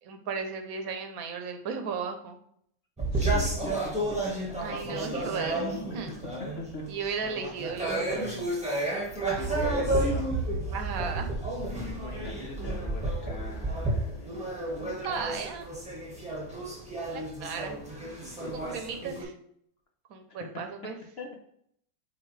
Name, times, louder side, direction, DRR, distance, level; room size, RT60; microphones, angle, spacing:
voice 1, 0.0-2.4 4.6-5.7 5.9-6.4 6.9-8.2 10.7-11.3 15.0-15.7 17.0-17.8 18.5-19.3 20.1-21.0, right 5 dB, 70° right, 6 dB, 1.1 m, -35 dB
sound 1, 3.0-19.2, right 2 dB, 5° right, 1.4 m, -31 dB
voice 2, 3.1-3.7 4.4-4.5 5.9-6.3 6.7-6.8 8.7-9.0 9.3-10.3 11.9-15.4 18.2-19.0 20.3-20.4 21.2-21.4, left 3 dB, 50° left, 2 dB, 1.0 m, -42 dB
8.1 x 3.9 x 3.3 m, 0.70 s
omnidirectional pair, 1.6 m